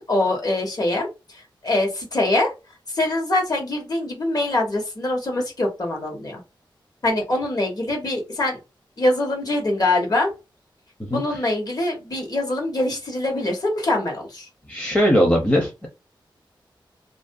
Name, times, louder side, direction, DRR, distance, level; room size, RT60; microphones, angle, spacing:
voice 1, 0.0-2.5 2.9-6.4 7.0-8.6 9.0-10.3 11.1-14.5, left 2 dB, 45° left, 0 dB, 1.1 m, -24 dB
voice 2, 14.7-15.9, equal, 15° left, 0 dB, 0.7 m, -19 dB
2.5 x 2.2 x 2.6 m, 0.27 s
wide cardioid pair, 80°, 9 cm